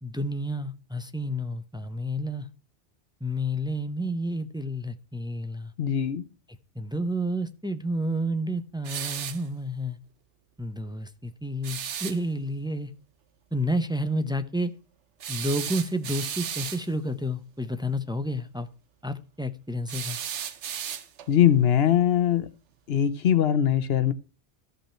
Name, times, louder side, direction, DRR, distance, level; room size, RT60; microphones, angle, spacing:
voice 1, 0.0-2.5 3.2-5.7 6.7-10.0 10.6-12.9 13.5-14.7 15.3-18.7 19.0-20.2, equal, 5° right, 0.5 m, -30 dB
voice 2, 5.8-6.2 21.3-22.5 22.9-24.1, left 10 dB, 65° left, 1.0 m, -21 dB
sound 1, 8.8-9.5 11.6-12.2 15.2-16.9 19.9-21.3, right 9 dB, 80° right, 1.1 m, -34 dB
14.0 x 5.5 x 4.4 m
omnidirectional pair, 1.2 m